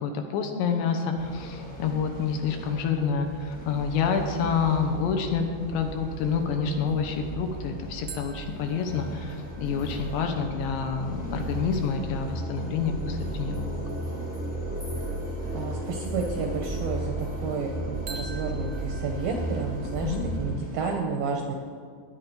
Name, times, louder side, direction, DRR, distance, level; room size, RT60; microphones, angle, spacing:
voice 1, 0.0-5.4 5.7-13.8 20.0-20.3, left 6 dB, 75° left, 4 dB, 3.0 m, -28 dB
sound 1, 1.1-20.9, right 2 dB, 50° left, 0.8 m, -42 dB
sound 2, 3.6-3.7 4.2-20.5, right 1 dB, 5° right, 0.8 m, -35 dB
sound 3, 8.1-11.6 18.1-20.8, right 4 dB, 45° right, 1.3 m, -47 dB
voice 2, 15.5-21.5, right 4 dB, 75° right, 2 dB, 2.2 m, -31 dB
16.5 x 10.5 x 5.3 m, 2.1 s
omnidirectional pair, 5.4 m